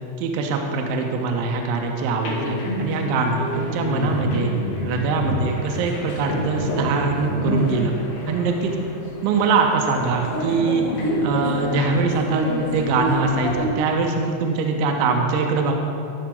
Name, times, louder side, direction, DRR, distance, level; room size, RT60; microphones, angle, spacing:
voice 1, 0.2-4.5 4.8-7.9 8.3-8.7 9.2-10.9 11.2-12.5 12.7-15.7, right 4 dB, 80° right, 2 dB, 2.8 m, -22 dB
sound 1, 2.2-13.7, left 1 dB, 60° left, 3.6 m, -28 dB
14.0 x 5.8 x 3.7 m, 2.7 s
omnidirectional pair, 5.8 m